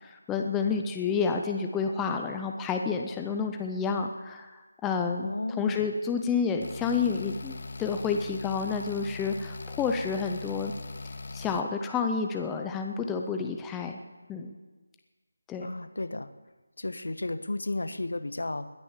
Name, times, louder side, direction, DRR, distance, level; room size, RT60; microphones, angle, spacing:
voice 1, 0.0-10.7 11.3-14.0 14.3-14.6 15.5-15.7, left 5 dB, 5° left, 3 dB, 0.5 m, -30 dB
voice 2, 5.1-5.9 15.6-16.3 16.8-18.7, left 2 dB, 80° left, 12 dB, 1.3 m, -33 dB
sound 1, 6.6-11.6, left 3 dB, 40° left, 0.9 m, -40 dB
20.5 x 9.8 x 7.2 m, 1.3 s
figure-of-eight pair, 175°, 0 cm